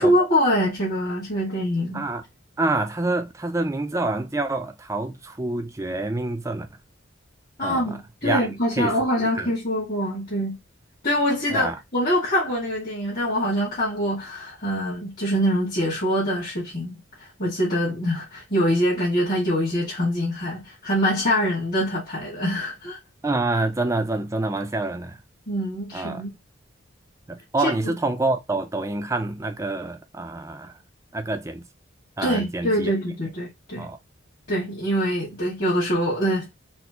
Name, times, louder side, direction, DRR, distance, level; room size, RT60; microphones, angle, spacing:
voice 1, 0.0-2.0 7.6-10.6 11.0-23.0 25.5-26.3 27.6-27.7 32.2-33.9 34.5-36.5, equal, 45° left, 1.7 m, -24 dB
voice 2, 2.6-6.7 7.6-9.5 11.5-11.8 23.2-25.2 25.9-26.2 27.3-30.8 31.1-31.7 32.2-32.9 33.8-34.0, right 2 dB, 15° right, 0.4 m, -27 dB
4.2 x 2.1 x 2.8 m
head